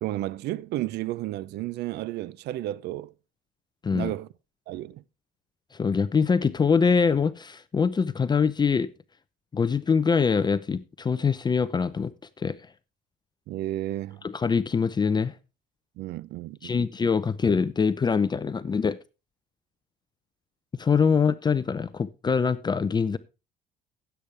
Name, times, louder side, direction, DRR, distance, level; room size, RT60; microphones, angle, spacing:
voice 1, 0.0-3.1 3.9-4.3 4.7-5.0 13.5-14.2 16.0-16.9, right 15 dB, 80° right, 0.6 m, -32 dB
voice 2, 5.8-8.9 9.5-12.1 12.4-12.6 14.2-15.3 16.6-19.0 20.8-23.2, left 5 dB, 25° left, 0.6 m, -24 dB
16.0 x 8.3 x 3.4 m
cardioid pair, 110°, 17 cm